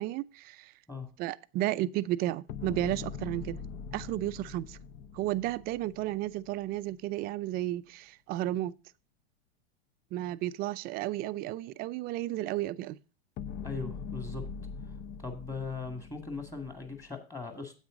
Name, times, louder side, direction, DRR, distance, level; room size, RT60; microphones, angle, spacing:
voice 1, 0.0-0.7 1.2-3.6 3.9-4.8 5.1-8.7 10.1-13.0, right 15 dB, 30° right, 0.5 m, -33 dB
sound 1, 2.5-6.8 13.4-17.1, left 6 dB, 30° left, 0.6 m, -42 dB
voice 2, 13.6-14.4 14.8-14.9 15.2-17.7, left 4 dB, 10° left, 2.1 m, -39 dB
9.6 x 8.1 x 3.8 m
hypercardioid pair, 115°, 31 cm